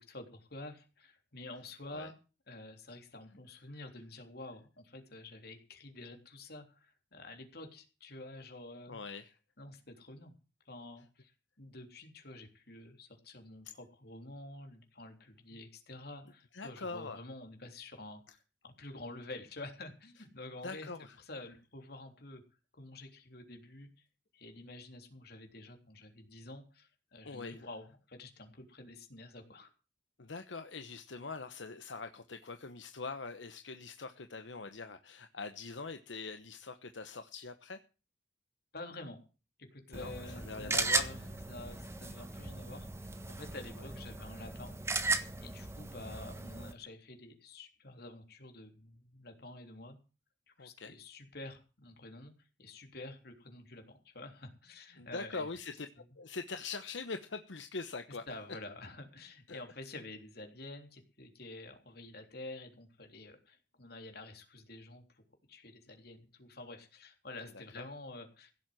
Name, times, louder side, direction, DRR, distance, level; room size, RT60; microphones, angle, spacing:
voice 1, 0.0-2.1 2.5-9.0 9.6-10.3 10.7-11.3 11.6-20.9 21.2-22.4 22.7-23.9 24.3-29.7 38.7-39.2 39.6-45.1 45.4-50.0 50.5-52.3 52.6-55.5 58.3-65.2 65.5-68.5, left 2 dB, 60° left, 5 dB, 3.5 m, -49 dB
voice 2, 8.9-9.2 16.5-17.2 20.6-21.2 27.2-27.7 30.2-37.8 39.9-41.3 43.8-43.9 50.6-50.9 55.0-55.9 56.2-58.2 59.5-59.6 67.8-67.9, left 4 dB, 85° left, 8 dB, 1.0 m, -43 dB
sound 1, 39.9-46.7, right 3 dB, 15° right, 1.3 m, -37 dB
16.5 x 7.6 x 7.8 m, 0.34 s
head